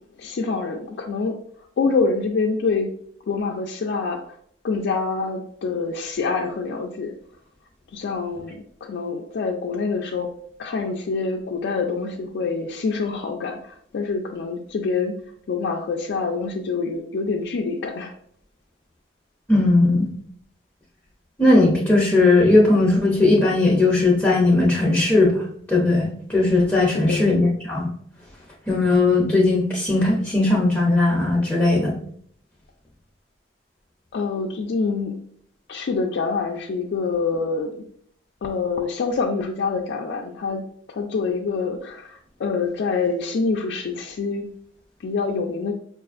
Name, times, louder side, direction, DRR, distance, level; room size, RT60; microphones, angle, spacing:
voice 1, 0.2-1.3 1.8-2.9 3.3-4.2 4.6-7.1 7.9-8.5 8.9-10.3 10.6-13.6 13.9-15.1 15.5-18.1 26.9-27.2 34.1-35.1 35.7-37.7 38.4-40.6 41.0-42.0 42.4-44.5 45.0-45.7, left 4 dB, 65° left, 1 dB, 0.4 m, -25 dB
voice 2, 19.5-20.1 21.4-25.4 25.7-27.9 28.7-32.0, left 2 dB, 10° left, -4 dB, 0.6 m, -18 dB
5.0 x 2.4 x 2.4 m, 0.64 s
head